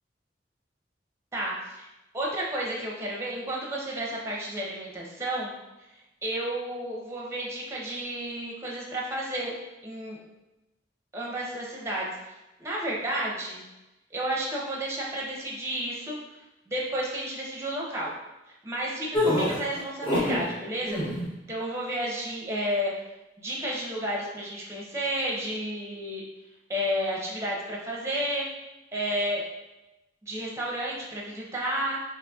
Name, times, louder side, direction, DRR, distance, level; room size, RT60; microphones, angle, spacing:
voice 1, 1.3-1.9 2.1-5.5 6.2-9.5 9.8-10.2 11.1-13.6 14.1-16.2 16.7-18.1 18.5-21.0 21.5-23.0 23.4-26.2 26.7-28.5 28.9-29.4 30.2-32.0, right 1 dB, 15° right, -3 dB, 0.5 m, -31 dB
sound 1, 19.1-20.5 20.8-21.3, left 1 dB, 30° left, 0.8 m, -26 dB
3.9 x 2.9 x 2.3 m, 1.0 s
head